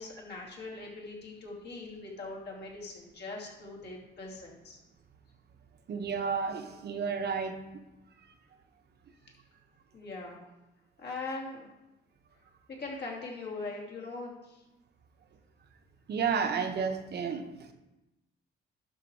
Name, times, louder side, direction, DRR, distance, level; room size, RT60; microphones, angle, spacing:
voice 1, 0.0-4.8 9.9-10.5 11.0-11.7 12.7-14.6, left 3 dB, 55° left, -2 dB, 2.8 m, -41 dB
voice 2, 5.9-7.6 16.1-17.7, right 6 dB, 55° right, 6 dB, 1.0 m, -31 dB
12.0 x 4.9 x 4.6 m, 1.0 s
cardioid pair, 90°, 20 cm